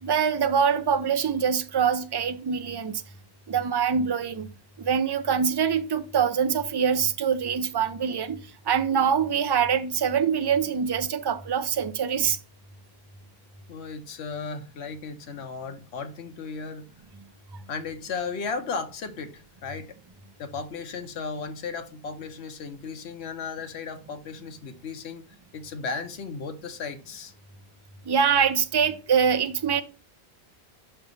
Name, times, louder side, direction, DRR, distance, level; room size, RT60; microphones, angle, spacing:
voice 1, 0.0-3.0 3.5-4.5 4.8-12.4 28.1-29.8, right 7 dB, 40° right, 0.3 m, -24 dB
voice 2, 13.7-16.9 17.7-19.9 20.4-25.2 25.5-27.3, left 5 dB, 85° left, 1.1 m, -35 dB
5.8 x 3.4 x 5.2 m
omnidirectional pair, 1.1 m